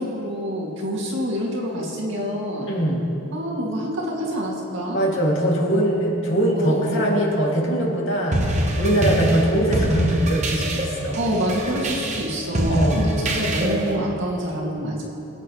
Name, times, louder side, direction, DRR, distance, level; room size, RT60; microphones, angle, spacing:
voice 1, 0.0-2.7 3.3-5.1 6.5-7.1 8.9-9.1 11.1-15.0, equal, 55° right, -4 dB, 2.3 m, -27 dB
voice 2, 2.6-3.0 4.9-11.2 12.7-13.1, right 1 dB, 60° left, -3 dB, 2.5 m, -22 dB
sound 1, 8.3-14.0, right 1 dB, 30° right, 1.0 m, -24 dB
23.5 x 8.8 x 3.2 m, 3.0 s
head